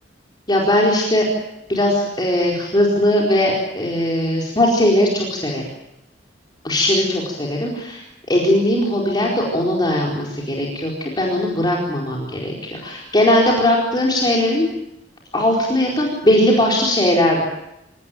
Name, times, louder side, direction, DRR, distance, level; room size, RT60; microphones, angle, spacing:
voice 1, 0.5-1.3 1.7-5.6 6.6-14.7 15.3-17.4, left 1 dB, 25° left, -2 dB, 4.5 m, -19 dB
27.0 x 18.5 x 9.2 m, 0.87 s
head